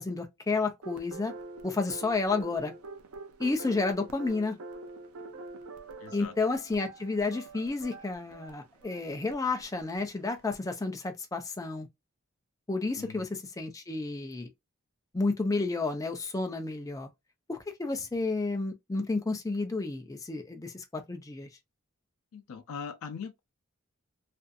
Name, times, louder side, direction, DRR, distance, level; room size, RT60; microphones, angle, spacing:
voice 1, 0.0-1.3 1.6-2.7 3.4-4.6 6.1-11.9 12.7-14.5 15.1-17.1 17.5-21.5, left 3 dB, 15° left, 0.4 m, -31 dB
sound 1, 0.8-10.6, right 3 dB, 85° right, 0.5 m, -45 dB
voice 2, 6.0-6.3 13.0-13.3 22.3-23.4, left 6 dB, 85° left, 0.4 m, -41 dB
2.5 x 2.4 x 2.3 m
head